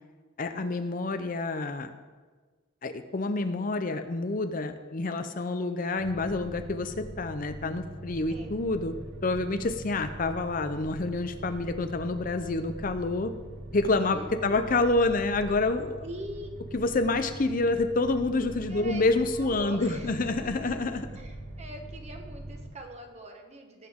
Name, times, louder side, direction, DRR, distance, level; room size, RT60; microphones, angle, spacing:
voice 1, 0.4-1.9 2.8-8.9 9.2-13.3 13.7-16.0 16.7-21.1, left 2 dB, 40° left, 8 dB, 0.6 m, -28 dB
sound 1, 6.0-22.7, right 1 dB, 75° right, 2.0 m, -43 dB
voice 2, 14.1-14.7 16.0-16.7 18.7-19.0 19.3-20.3 21.1-23.9, equal, 30° right, 3 dB, 1.3 m, -43 dB
18.5 x 8.2 x 3.7 m, 1.4 s
head